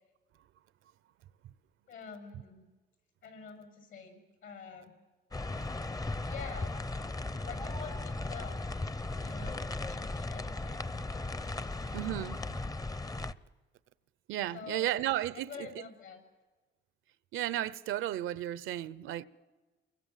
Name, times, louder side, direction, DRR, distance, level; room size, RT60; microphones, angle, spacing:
voice 1, 1.9-2.6 3.2-4.9 6.3-6.8 7.4-8.6 9.2-10.9 14.5-14.9 15.3-16.2, left 6 dB, 75° left, 7.1 m, -47 dB
sound 1, 5.3-13.3, left 2 dB, 20° left, 0.7 m, -37 dB
voice 2, 11.9-12.4 14.3-15.7 17.3-19.2, right 13 dB, 85° right, 0.8 m, -33 dB
28.5 x 23.0 x 7.5 m
cardioid pair, 90°, 20 cm